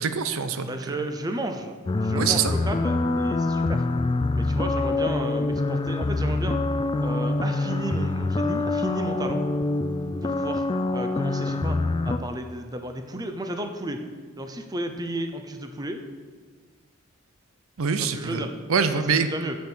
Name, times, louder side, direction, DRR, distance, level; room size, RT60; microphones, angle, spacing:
voice 1, 0.0-0.9 2.1-2.5 17.8-19.3, right 6 dB, 80° right, 10 dB, 0.6 m, -25 dB
voice 2, 0.6-3.8 4.4-6.6 7.0-9.4 10.2-10.6 10.9-11.8 12.0-14.0 14.4-16.0 18.0-18.5 19.1-19.6, right 1 dB, 20° right, 6 dB, 0.6 m, -33 dB
sound 1, 1.8-12.2, left 2 dB, 20° left, 0.3 m, -25 dB
8.3 x 6.8 x 6.1 m, 1.5 s
head